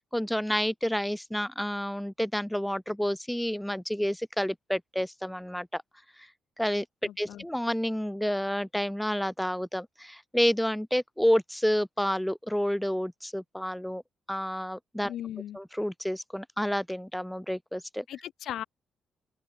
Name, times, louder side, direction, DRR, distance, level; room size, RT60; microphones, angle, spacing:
voice 1, 0.0-5.8 6.2-6.3 6.6-6.9 7.2-14.0 14.3-15.1 15.5-18.0, equal, 5° left, 0.5 m, -29 dB
voice 2, 7.0-7.4 15.1-15.6 18.1-18.6, left 11 dB, 75° left, 1.6 m, -37 dB
open air
cardioid pair, 90°, 0 cm